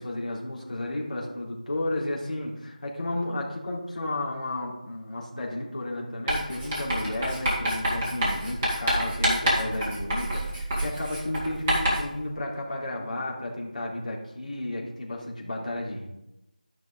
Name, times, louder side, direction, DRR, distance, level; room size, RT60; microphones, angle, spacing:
voice 1, 0.0-16.1, left 1 dB, 55° left, -3 dB, 3.6 m, -33 dB
Writing, 6.3-12.2, right 1 dB, 15° right, 2.0 m, -28 dB
13.0 x 6.0 x 3.9 m, 0.88 s
figure-of-eight pair, 175°, 5 cm